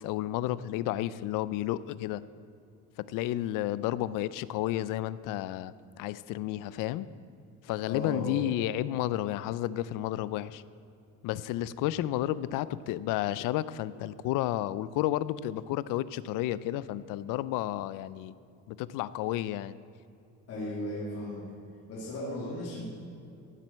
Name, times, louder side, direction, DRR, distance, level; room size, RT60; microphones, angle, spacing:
voice 1, 0.0-2.2 3.1-7.1 7.6-10.6 11.2-18.3 18.7-19.8, left 14 dB, 75° left, 17 dB, 0.5 m, -32 dB
voice 2, 7.8-8.4 20.5-21.5 21.9-22.8, left 1 dB, 50° left, -5 dB, 3.0 m, -36 dB
15.0 x 7.6 x 7.5 m, 2.6 s
cardioid pair, 160°, 32 cm